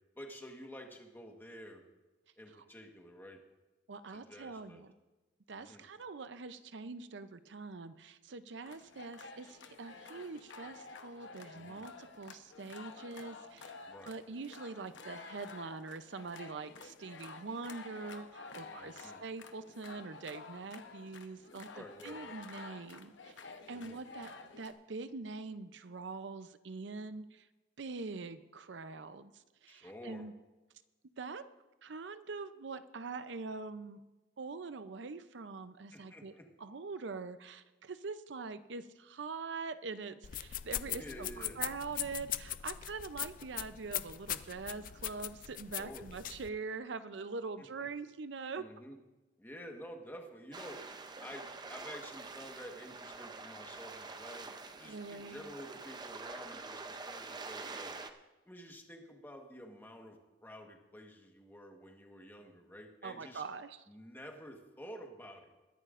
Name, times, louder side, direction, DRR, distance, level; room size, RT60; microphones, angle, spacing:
voice 1, 0.2-1.8 2.4-3.4 4.1-4.8 5.5-5.8 11.5-11.8 13.9-14.1 18.5-19.2 21.7-22.3 23.7-24.0 29.7-30.2 35.9-36.4 40.9-41.6 45.7-46.1 47.8-47.9 48.6-49.0 49.4-50.8 51.2-54.5 54.8-58.0 58.5-63.4 63.9-65.5, equal, 10° left, 2 dB, 1.3 m, -50 dB
voice 2, 3.9-4.9 5.5-13.7 14.0-23.4 23.7-27.5 27.8-30.3 31.2-31.4 31.8-34.0 34.4-36.3 36.6-48.6 54.8-55.4 63.0-63.8, right 4 dB, 70° right, 12 dB, 0.6 m, -44 dB
sound 1, 8.7-24.7, left 4 dB, 80° left, 0.9 m, -51 dB
sound 2, 40.2-46.5, left 13 dB, 45° left, 0.4 m, -40 dB
sound 3, 50.5-58.1, right 3 dB, 25° right, 0.6 m, -46 dB
21.5 x 11.0 x 2.5 m, 1.1 s
head